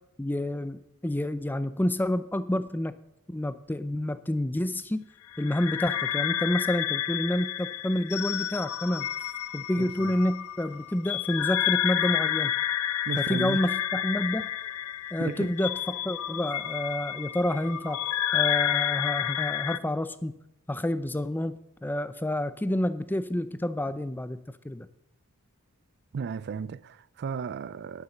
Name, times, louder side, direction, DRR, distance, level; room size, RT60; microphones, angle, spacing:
voice 1, 0.2-3.0 3.3-5.1 5.4-9.1 9.5-12.5 13.2-14.5 15.1-18.0 18.3-20.3 20.7-24.9, left 1 dB, 10° left, 0.5 m, -29 dB
sound 1, 5.3-19.8, left 11 dB, 70° left, 0.5 m, -30 dB
voice 2, 9.8-10.1 13.1-13.7 15.2-15.5 26.1-28.0, right 6 dB, 50° right, 0.4 m, -34 dB
10.0 x 9.6 x 6.6 m
head